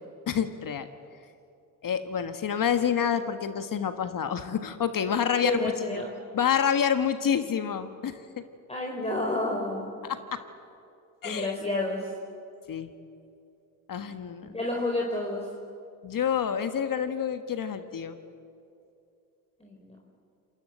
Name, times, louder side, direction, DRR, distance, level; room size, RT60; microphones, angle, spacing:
voice 1, 0.3-0.9 1.8-6.0 6.3-8.4 10.1-10.2 11.2-11.5 12.7-12.9 13.9-14.5 16.0-18.2, left 8 dB, 45° left, 9 dB, 1.6 m, -28 dB
voice 2, 5.3-6.1 8.7-10.0 11.2-12.1 14.5-15.5 19.6-20.0, left 2 dB, 15° left, -1 dB, 4.5 m, -30 dB
27.0 x 21.0 x 8.0 m, 2.7 s
hypercardioid pair, 60°, 46 cm